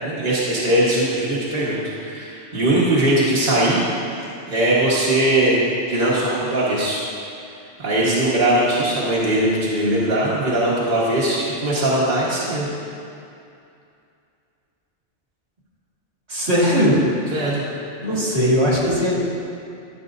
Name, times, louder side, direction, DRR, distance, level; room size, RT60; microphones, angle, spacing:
voice 1, 0.0-3.8 4.5-5.6 5.9-7.0 7.8-12.7 17.3-17.6, right 1 dB, 40° right, -8 dB, 1.6 m, -20 dB
voice 2, 16.3-17.0 17.3-17.5 18.0-19.2, equal, 60° right, -6 dB, 2.1 m, -19 dB
13.5 x 7.3 x 2.7 m, 2.5 s
omnidirectional pair, 1.3 m